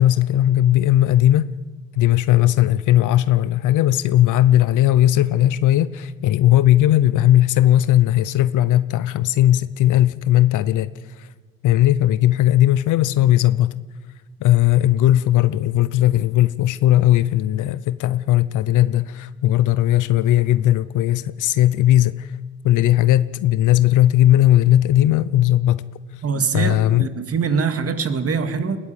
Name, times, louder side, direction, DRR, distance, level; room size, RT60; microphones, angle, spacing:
voice 1, 0.0-1.5 1.9-10.9 11.2-11.3 11.6-13.7 14.4-22.3 22.6-25.8 26.5-27.1, left 13 dB, 80° left, 0.7 m, -17 dB
voice 2, 26.2-28.8, right 5 dB, 50° right, 2.3 m, -23 dB
21.5 x 14.5 x 9.1 m
cardioid pair, 90°, 30 cm